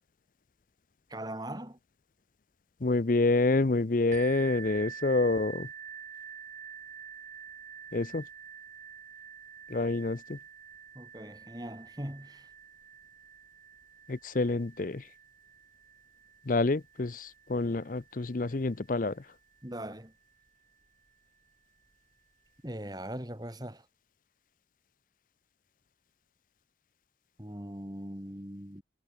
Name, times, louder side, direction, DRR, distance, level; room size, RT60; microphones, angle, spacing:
voice 1, 1.1-1.8 10.9-12.5 19.6-20.1 22.6-23.8 27.4-28.8, right 1 dB, 20° right, 3.1 m, -40 dB
voice 2, 2.8-5.7 7.9-8.2 9.7-10.4 14.1-15.0 16.5-19.2, left 2 dB, 45° left, 0.6 m, -28 dB
sound 1, 4.1-19.7 20.4-20.5 21.1-21.2, right 8 dB, 40° right, 6.8 m, -48 dB
head